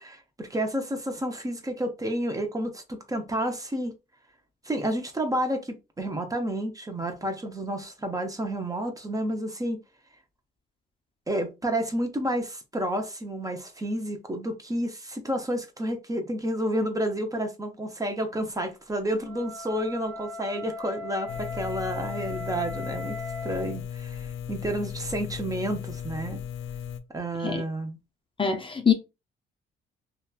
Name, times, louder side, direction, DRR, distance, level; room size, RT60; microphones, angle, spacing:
voice 1, 0.0-3.9 4.6-9.8 11.3-23.2 23.4-26.4 27.1-28.0, right 1 dB, 15° right, 0.6 m, -30 dB
Wind instrument woodwind instrument, 19.1-23.8, left 3 dB, 65° right, 1.1 m, -38 dB
sound 1, 21.3-27.0, left 8 dB, 80° left, 0.4 m, -36 dB
voice 2, 28.4-28.9, left 6 dB, 25° left, 0.5 m, -23 dB
2.8 x 2.2 x 2.3 m
cardioid pair, 90°, 20 cm